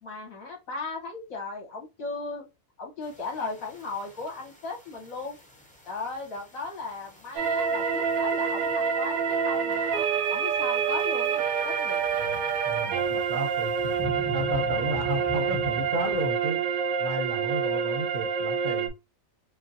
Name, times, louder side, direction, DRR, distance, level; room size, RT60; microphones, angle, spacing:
voice 1, 0.0-2.5 2.8-5.4 5.9-9.9 10.3-12.2, left 3 dB, 80° left, 2.0 m, -36 dB
sound 1, 3.0-16.3, left 1 dB, 5° left, 0.8 m, -43 dB
sound 2, 7.4-18.9, right 6 dB, 90° right, 1.1 m, -27 dB
voice 2, 12.2-13.9 14.3-16.6 17.0-18.9, right 1 dB, 50° right, 0.7 m, -33 dB
5.3 x 2.1 x 2.9 m
omnidirectional pair, 1.4 m